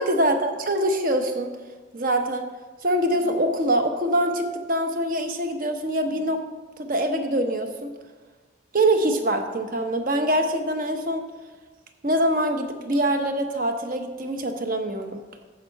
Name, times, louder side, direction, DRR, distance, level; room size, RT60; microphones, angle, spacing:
voice 1, 0.0-1.5 1.9-2.5 2.8-6.4 6.8-7.9 8.7-11.3 12.0-15.2, right 1 dB, 45° right, 6 dB, 0.9 m, -24 dB
10.0 x 7.1 x 4.5 m, 1.3 s
head